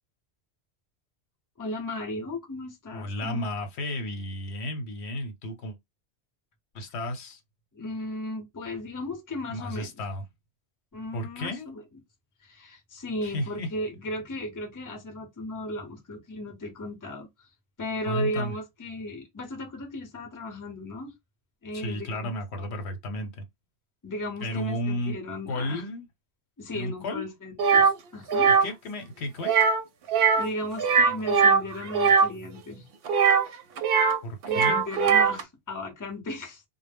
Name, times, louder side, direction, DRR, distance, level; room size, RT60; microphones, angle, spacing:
voice 1, 1.6-3.4 7.7-9.9 10.9-11.8 12.4-17.3 17.8-21.1 21.6-22.4 24.0-25.8 26.6-28.5 30.4-32.9 34.5-36.6, left 1 dB, 20° left, 0.6 m, -36 dB
voice 2, 2.9-5.8 6.7-7.4 9.5-10.2 11.1-11.7 13.2-13.7 18.1-18.5 21.7-23.5 24.4-25.2 25.5-26.1 26.7-27.3 28.5-29.5 34.2-34.8, left 1 dB, 80° left, 1.0 m, -33 dB
sound 1, 27.6-27.9 28.3-28.7 29.4-29.8 30.1-30.5 30.8-32.3 33.1-34.2 34.4-35.4, right 5 dB, 65° right, 0.7 m, -20 dB
2.0 x 2.0 x 3.3 m
omnidirectional pair, 1.1 m